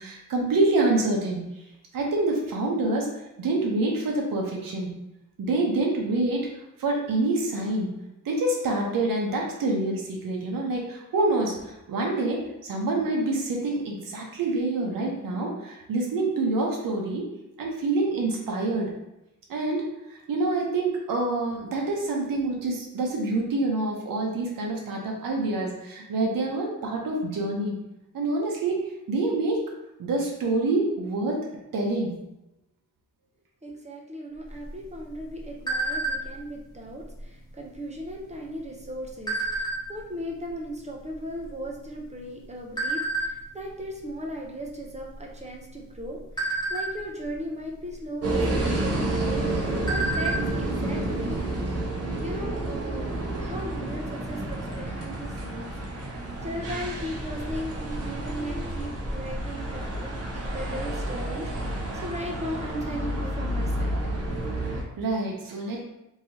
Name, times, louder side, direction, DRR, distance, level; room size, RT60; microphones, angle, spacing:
voice 1, 0.0-1.4 1.9-3.1 3.4-4.9 5.4-6.5 6.8-7.9 8.2-17.3 17.6-18.9 19.5-27.8 28.1-28.8 29.1-29.6 30.0-31.4 31.7-32.2 64.6-65.8, right 2 dB, 85° right, 0 dB, 0.7 m, -26 dB
voice 2, 33.6-53.1 53.4-64.3, equal, 20° right, -1 dB, 0.5 m, -37 dB
sound 1, 34.5-36.5 36.9-37.2 37.5-37.9 38.6-40.1 40.7-40.8 41.0-42.3 42.8-43.3 43.8-44.0 44.3-44.6 45.0-45.5 46.0-47.4 48.5-48.6 49.0-49.1 49.5-50.5 50.8-50.9 51.3-51.4, right 2 dB, 10° left, 0.9 m, -29 dB
sound 2, 48.2-64.8, right 1 dB, 50° right, 0.8 m, -30 dB
3.1 x 2.7 x 2.7 m, 0.90 s
wide cardioid pair, 110°, 33 cm